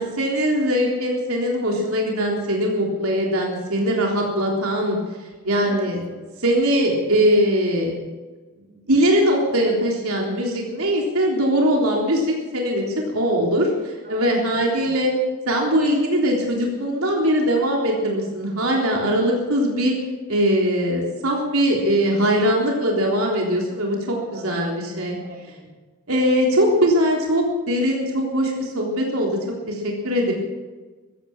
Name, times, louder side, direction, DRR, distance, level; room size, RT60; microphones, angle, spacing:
voice 1, 0.0-5.0 5.4-6.0 6.4-7.9 8.9-15.1 15.5-20.0 20.3-25.2 26.1-29.4 29.7-30.3, equal, 80° right, -1 dB, 3.7 m, -21 dB
voice 2, 5.3-5.8 6.1-6.2 14.0-14.9 18.6-19.0 21.8-22.3 24.1-25.7, equal, 45° right, -1 dB, 4.2 m, -41 dB
15.0 x 15.0 x 6.1 m, 1.3 s
head